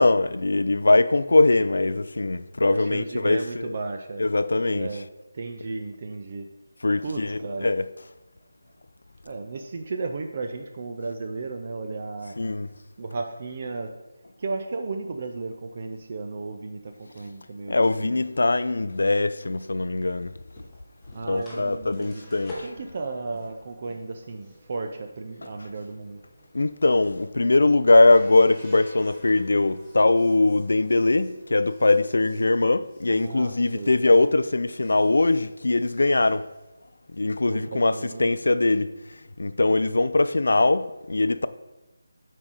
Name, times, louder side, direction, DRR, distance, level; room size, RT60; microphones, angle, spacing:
voice 1, 0.0-3.7 4.2-4.9 6.8-7.8 12.4-12.7 17.7-20.3 21.3-22.6 26.5-36.5 37.1-38.9 39.4-41.5, left 2 dB, 70° left, 0.4 m, -21 dB
voice 2, 2.7-4.2 4.7-5.1 5.3-6.5 7.0-7.7 9.2-12.4 13.0-13.9 14.4-18.2 21.1-22.2 22.6-26.2 33.1-33.9 37.5-38.3, right 3 dB, 30° right, 0.4 m, -34 dB
sound 1, 18.3-34.3 34.6-37.2, left 1 dB, 5° left, 0.9 m, -50 dB
7.4 x 4.7 x 4.0 m
figure-of-eight pair, 175°, 0 cm